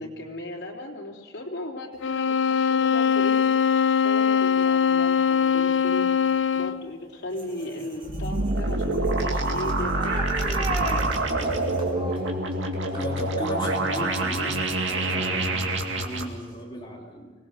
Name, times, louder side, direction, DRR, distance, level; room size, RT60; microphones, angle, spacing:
voice 1, 0.0-6.1 6.5-11.6, left 1 dB, 65° left, -2 dB, 3.8 m, -37 dB
sound 1, 2.0-6.9, left 7 dB, 85° left, 0.6 m, -22 dB
sound 2, 7.3-15.1 15.5-16.6, right 1 dB, 30° right, 3.8 m, -39 dB
sound 3, 8.0-16.2, right 2 dB, 85° right, 2.2 m, -26 dB
voice 2, 12.9-17.3, equal, 25° left, -1 dB, 3.1 m, -36 dB
25.0 x 19.0 x 6.8 m, 1.4 s
head